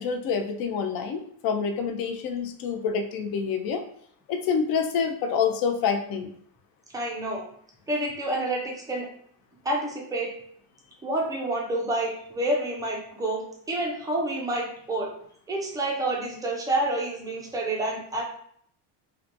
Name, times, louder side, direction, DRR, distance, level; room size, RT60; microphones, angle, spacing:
voice 1, 0.0-3.8 4.3-6.3, left 6 dB, 50° left, 5 dB, 0.5 m, -27 dB
voice 2, 6.9-7.5 7.9-9.1 9.6-10.3 11.0-15.1 15.5-18.2, right 1 dB, 10° right, -1 dB, 0.4 m, -28 dB
2.8 x 2.2 x 2.5 m, 0.63 s
cardioid pair, 125°, 47 cm